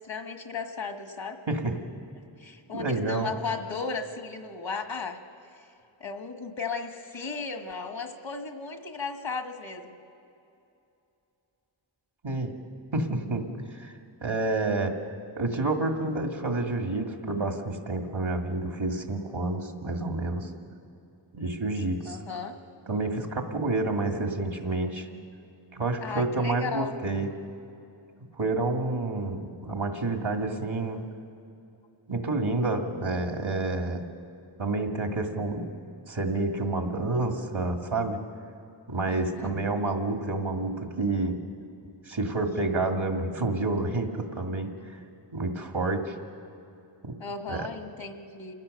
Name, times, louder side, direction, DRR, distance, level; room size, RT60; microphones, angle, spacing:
voice 1, 0.0-1.4 2.4-5.7 6.0-10.0 22.1-22.5 26.0-26.9 39.1-39.6 47.2-48.5, left 4 dB, 75° left, 5 dB, 1.8 m, -35 dB
voice 2, 2.7-3.3 12.2-12.6 12.9-13.9 14.2-14.9 15.4-20.5 21.3-22.2 22.9-25.1 25.7-27.3 28.4-31.0 32.1-34.0 34.6-35.7 36.1-38.2 38.9-41.4 42.1-45.0 45.3-46.1 47.0-47.1 47.5-47.7, right 2 dB, 85° right, 4 dB, 2.0 m, -29 dB
28.5 x 16.5 x 6.6 m, 2.7 s
wide cardioid pair, 60°, 46 cm